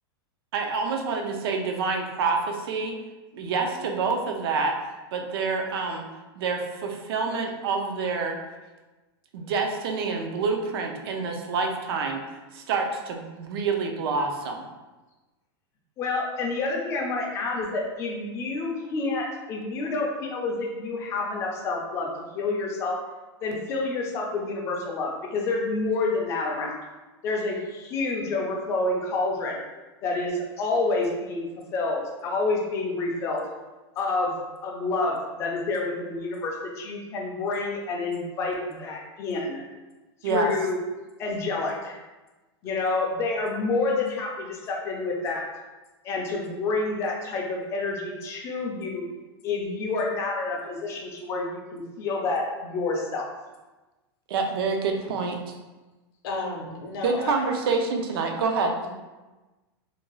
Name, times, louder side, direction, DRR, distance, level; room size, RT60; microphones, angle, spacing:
voice 1, 0.5-3.0 3.3-4.8 5.1-6.1 6.4-8.4 9.3-12.2 12.5-14.6 40.2-40.5 54.3-55.5 57.0-58.7, right 4 dB, 60° right, 3 dB, 0.5 m, -27 dB
voice 2, 16.0-23.0 23.4-26.8 27.2-29.6 30.0-33.5 34.0-34.4 34.6-39.7 40.2-40.8 41.2-42.0 42.6-45.5 46.0-49.1 49.4-53.3, left 3 dB, 20° left, 0 dB, 0.3 m, -28 dB
voice 3, 56.2-57.5 58.8-58.9, left 3 dB, 60° left, 0 dB, 0.6 m, -33 dB
2.6 x 2.2 x 3.0 m, 1.2 s
supercardioid pair, 165°, 14 cm